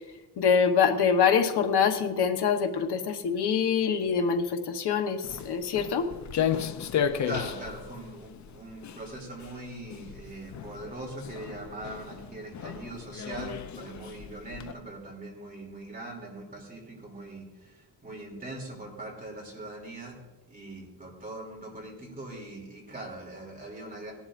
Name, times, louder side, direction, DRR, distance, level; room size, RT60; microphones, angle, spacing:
voice 1, 0.4-6.1, left 6 dB, 75° left, 6 dB, 1.1 m, -25 dB
Walk footsteps, 5.2-14.7, left 8 dB, 45° left, 0.5 m, -34 dB
voice 2, 7.2-20.2 20.5-24.1, right 2 dB, 20° right, -1 dB, 2.9 m, -41 dB
17.0 x 11.5 x 2.5 m, 1.2 s
wide cardioid pair, 165°, 40 cm